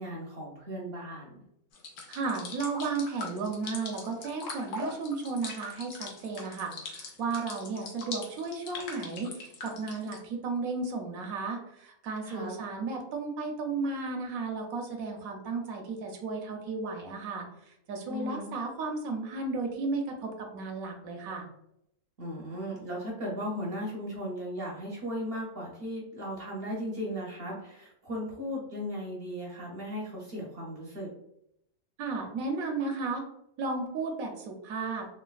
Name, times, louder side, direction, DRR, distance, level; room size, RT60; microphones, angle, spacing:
voice 1, 0.0-1.4 12.2-12.5 18.1-18.5 22.2-31.1, equal, 55° right, -2 dB, 0.7 m, -36 dB
sound 1, 1.7-10.2, left 3 dB, 85° left, 1.1 m, -41 dB
voice 2, 2.1-17.5 17.9-21.5 32.0-33.2 33.6-35.1, right 3 dB, 75° right, 2 dB, 1.0 m, -34 dB
3.2 x 2.3 x 2.3 m, 0.79 s
omnidirectional pair, 1.5 m